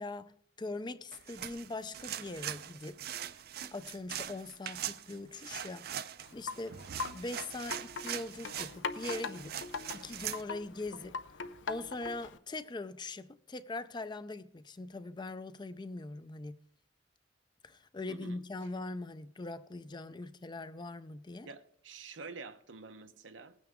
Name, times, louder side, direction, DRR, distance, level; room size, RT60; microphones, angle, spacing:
voice 1, 0.0-3.0 3.7-6.8 7.1-9.6 9.9-11.2 11.7-16.6 17.6-21.5, left 2 dB, 25° left, 0.4 m, -42 dB
sound 1, 1.1-10.4, right 10 dB, 55° right, 0.5 m, -42 dB
Wind chime, 6.2-12.4, left 4 dB, 85° left, 0.7 m, -42 dB
voice 2, 18.1-18.4 21.4-23.5, right 4 dB, 90° right, 0.9 m, -48 dB
19.0 x 9.2 x 3.6 m
head